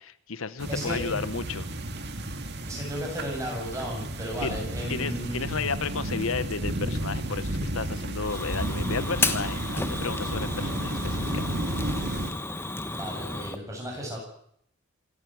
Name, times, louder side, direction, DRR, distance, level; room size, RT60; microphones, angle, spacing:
voice 1, 0.0-1.7 4.4-4.5 4.9-11.6, left 4 dB, 70° left, 14 dB, 1.0 m, -33 dB
sound 1, 0.6-12.3, right 1 dB, 50° right, 2.2 m, -32 dB
voice 2, 0.7-1.0 2.7-5.5 12.7-14.2, equal, 15° right, 0 dB, 8.0 m, -34 dB
Fire, 8.2-13.6, left 3 dB, 10° left, 1.2 m, -33 dB
27.5 x 12.0 x 9.4 m, 0.71 s
head